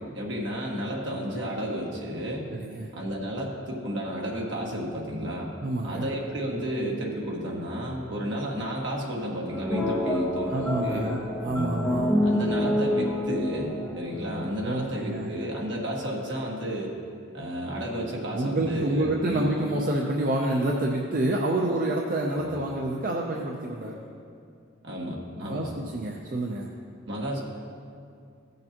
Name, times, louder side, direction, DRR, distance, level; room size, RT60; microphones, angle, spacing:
voice 1, 0.0-2.5 2.9-5.5 5.8-11.7 12.2-16.9 17.3-19.5 22.3-22.5 24.8-25.7 27.1-27.4, equal, 60° right, -2 dB, 1.6 m, -32 dB
voice 2, 2.5-2.9 5.6-6.1 10.5-12.1 14.6-15.3 18.3-24.0 25.4-26.8, right 1 dB, 45° right, -1 dB, 0.6 m, -28 dB
sound 1, 9.5-14.6, left 1 dB, 5° left, 1.1 m, -27 dB
16.0 x 6.6 x 2.9 m, 2.4 s
head